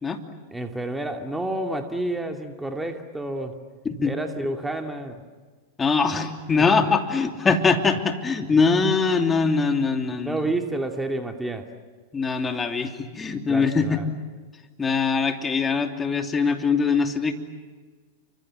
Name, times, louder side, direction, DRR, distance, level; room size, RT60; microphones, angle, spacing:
voice 1, 0.5-3.6 4.0-5.2 6.6-6.7 10.2-11.7 13.5-14.0, right 2 dB, 5° right, 4 dB, 2.5 m, -29 dB
voice 2, 5.8-10.4 12.1-14.0 14.8-17.3, left 4 dB, 20° left, 5 dB, 3.0 m, -22 dB
30.0 x 25.5 x 7.7 m, 1.5 s
hypercardioid pair, 105°, 0 cm